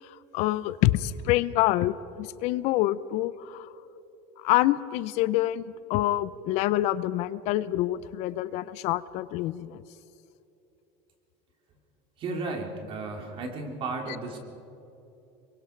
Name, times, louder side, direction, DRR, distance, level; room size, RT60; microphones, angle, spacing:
voice 1, 0.0-3.7 4.4-9.8, left 15 dB, 55° left, 16 dB, 0.6 m, -26 dB
voice 2, 12.2-14.4, right 3 dB, 40° right, 3 dB, 3.2 m, -34 dB
26.0 x 22.5 x 4.6 m, 2.9 s
cardioid pair, 145°, 13 cm